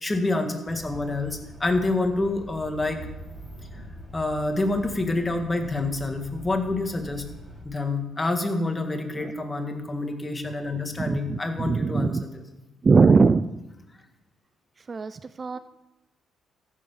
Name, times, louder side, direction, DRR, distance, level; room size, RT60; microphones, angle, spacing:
voice 1, 0.0-3.0 3.7-3.8 4.1-7.2 7.6-12.4, left 2 dB, 20° left, 5 dB, 1.8 m, -27 dB
sound 1, 0.7-7.6, right 1 dB, 15° right, 3.4 m, -43 dB
voice 2, 11.0-12.2 12.8-13.5 14.9-15.6, right 4 dB, 35° right, 13 dB, 0.4 m, -21 dB
14.5 x 7.0 x 5.7 m, 0.99 s
cardioid pair, 90°, 0 cm